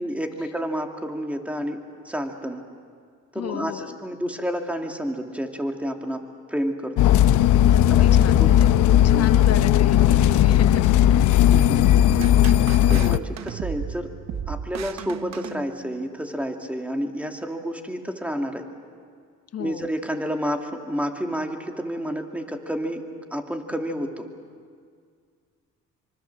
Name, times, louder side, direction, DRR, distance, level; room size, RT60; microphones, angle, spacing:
voice 1, 0.0-1.8 2.0-2.6 3.3-6.2 6.5-7.2 7.9-8.1 8.4-9.3 11.5-11.9 12.9-14.1 14.5-18.6 19.6-23.0 23.3-24.3, equal, 5° right, 3 dB, 2.5 m, -30 dB
voice 2, 3.3-4.0 7.7-8.7 9.0-10.8 11.1-11.4 19.5-19.8, left 9 dB, 55° left, 9 dB, 1.3 m, -33 dB
sound 1, 7.0-13.2, left 11 dB, 80° left, 0.8 m, -17 dB
sound 2, 12.0-16.1, right 8 dB, 60° right, 1.0 m, -34 dB
25.0 x 24.5 x 7.4 m, 2.1 s
cardioid pair, 90°, 30 cm